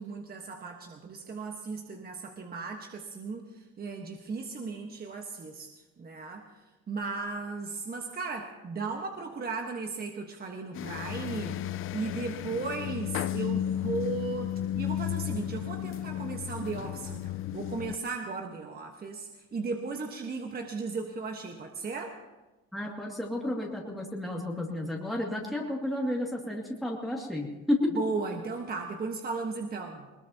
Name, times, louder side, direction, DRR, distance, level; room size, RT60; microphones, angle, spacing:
voice 1, 0.0-5.7 6.0-6.5 6.9-11.6 11.9-22.2 27.9-30.1, right 4 dB, 30° right, 3 dB, 1.4 m, -36 dB
sound 1, 10.7-18.0, left 11 dB, 45° left, 0.4 m, -33 dB
voice 2, 22.7-27.9, left 1 dB, ahead, -3 dB, 2.4 m, -32 dB
21.0 x 19.5 x 2.9 m, 1.1 s
cardioid pair, 105°, 31 cm